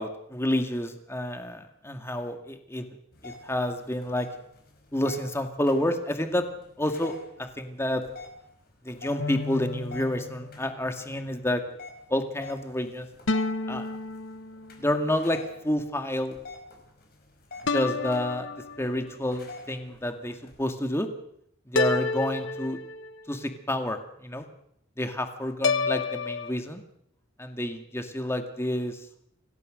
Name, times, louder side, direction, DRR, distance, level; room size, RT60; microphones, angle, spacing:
voice 1, 0.0-2.9 3.2-4.3 4.9-6.5 6.8-8.0 8.9-11.6 12.1-13.1 13.7-13.9 14.8-16.4 17.7-18.5 18.8-21.1 21.7-22.8 23.3-24.5 25.0-26.8 27.4-29.0, left 1 dB, 15° left, 6 dB, 2.1 m, -29 dB
sound 1, 3.1-20.6, left 3 dB, 50° left, 5.3 m, -49 dB
sound 2, 9.2-10.9 13.3-15.0 17.7-19.2 21.8-23.4 25.6-26.5, left 3 dB, 75° left, 1.1 m, -30 dB
27.0 x 17.0 x 6.5 m, 0.71 s
head